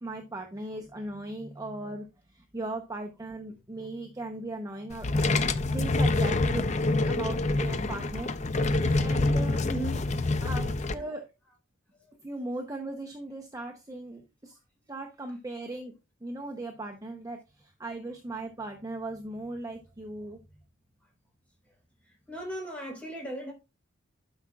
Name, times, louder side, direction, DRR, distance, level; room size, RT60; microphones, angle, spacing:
voice 1, 0.0-5.3 5.7-6.7 7.1-8.6 9.0-9.6 10.4-11.3 12.2-14.6 14.9-15.9 16.2-20.4, right 2 dB, 15° right, 0.7 m, -38 dB
sound 1, 4.9-10.9, left 2 dB, 35° left, 0.5 m, -26 dB
voice 2, 7.0-7.3 9.6-10.1 10.3-10.5 11.9-12.1 22.1-23.5, right 1 dB, 5° left, 3.9 m, -38 dB
12.0 x 5.7 x 2.4 m
head